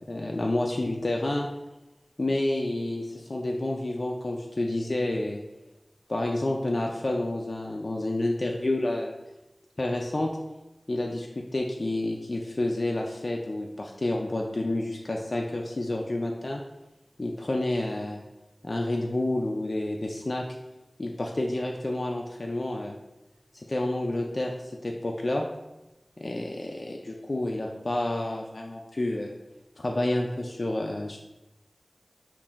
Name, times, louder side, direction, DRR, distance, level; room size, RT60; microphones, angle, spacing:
voice 1, 0.1-1.5 2.2-5.4 6.1-9.1 9.8-10.3 10.9-16.6 17.2-18.2 18.6-20.4 21.0-22.9 23.5-25.4 26.2-29.4 29.8-31.2, left 1 dB, 60° left, 0 dB, 0.3 m, -29 dB
5.4 x 2.5 x 2.4 m, 0.99 s
wide cardioid pair, 50°, 0 cm